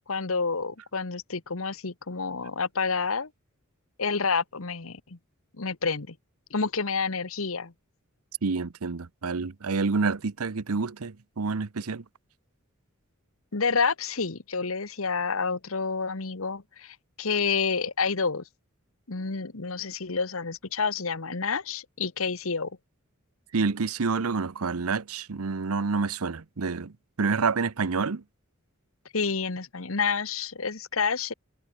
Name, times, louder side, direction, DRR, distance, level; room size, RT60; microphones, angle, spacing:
voice 1, 0.1-3.3 4.0-5.2 5.6-6.1 6.5-7.7 13.5-18.4 19.1-22.7 29.1-31.3, left 5 dB, 70° left, 1.3 m, -29 dB
voice 2, 8.4-12.0 23.5-26.9 27.2-28.2, right 4 dB, 85° right, 0.8 m, -28 dB
head